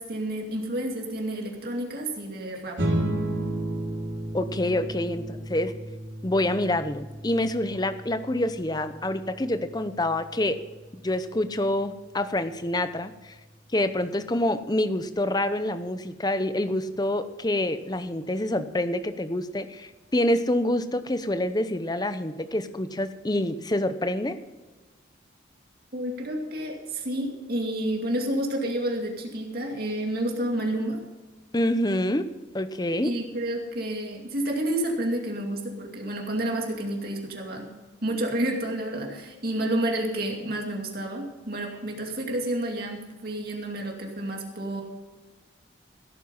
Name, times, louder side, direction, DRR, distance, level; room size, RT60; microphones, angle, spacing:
voice 1, 0.0-2.8 25.9-31.0 33.0-37.7 38.0-44.8, right 1 dB, 50° right, 1 dB, 2.5 m, -30 dB
sound 1, 2.8-13.5, right 1 dB, 90° right, 4.4 m, -34 dB
voice 2, 4.3-5.7 6.2-10.6 11.0-13.3 13.7-24.4 31.5-32.3 32.5-33.1, left 1 dB, 20° left, 11 dB, 0.8 m, -27 dB
16.0 x 9.2 x 5.6 m, 1.2 s
head